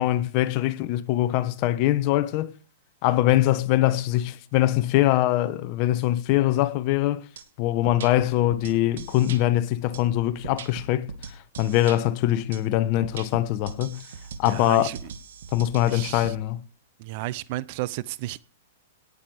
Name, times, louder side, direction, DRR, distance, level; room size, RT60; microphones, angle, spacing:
voice 1, 0.0-2.5 3.0-7.2 7.6-11.1 11.6-14.0 14.4-14.9 15.5-16.6, left 14 dB, 35° left, 1.2 m, -23 dB
sound 1, 7.4-7.5 7.9-9.4 9.9-12.0 12.5-12.6 13.0-16.3, right 6 dB, 75° right, 2.5 m, -40 dB
voice 2, 14.5-15.0 15.9-16.3 17.0-18.4, right 17 dB, 45° right, 0.7 m, -32 dB
18.5 x 8.0 x 5.0 m
hypercardioid pair, 155°, 0 cm